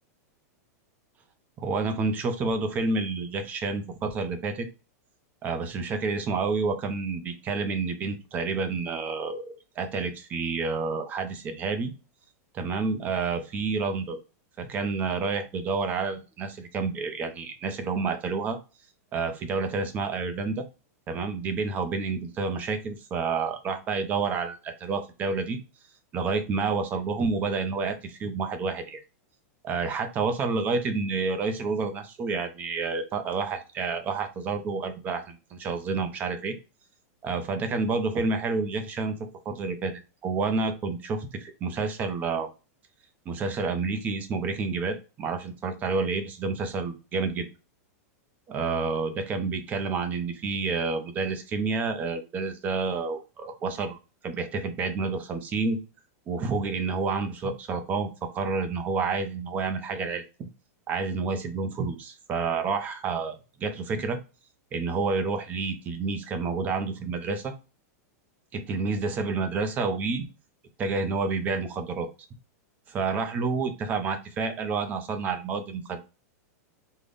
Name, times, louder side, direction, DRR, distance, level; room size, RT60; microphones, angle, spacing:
voice 1, 1.6-4.7 5.4-11.9 12.5-14.2 14.6-18.6 19.1-20.7 21.1-25.6 26.1-29.0 29.6-36.5 37.2-39.2 39.5-39.9 40.2-42.5 43.3-47.5 48.5-54.0 54.2-55.8 56.3-60.5 60.9-64.2 64.7-67.5 68.5-70.2 70.8-72.1 72.9-76.0, right 4 dB, 20° right, 8 dB, 0.5 m, -29 dB
3.8 x 2.1 x 3.3 m, 0.31 s
supercardioid pair, 170°, 9 cm